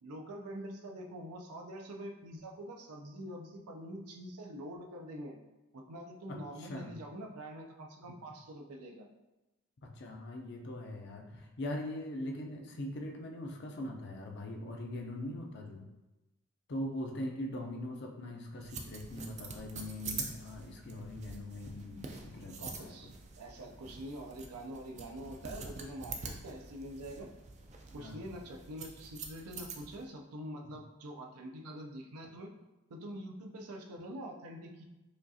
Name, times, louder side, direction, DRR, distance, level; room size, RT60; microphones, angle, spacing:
voice 1, 0.0-5.4 5.7-9.1 22.5-27.3 27.9-32.5 32.9-34.8, right 1 dB, 85° right, 2 dB, 0.5 m, -45 dB
voice 2, 6.3-6.9 9.8-15.9 16.7-23.0 28.0-28.2, left 1 dB, 50° left, 2 dB, 0.5 m, -41 dB
sound 1, 18.6-30.0, right 4 dB, 30° right, 0.3 m, -46 dB
5.0 x 2.4 x 2.7 m, 1.0 s
head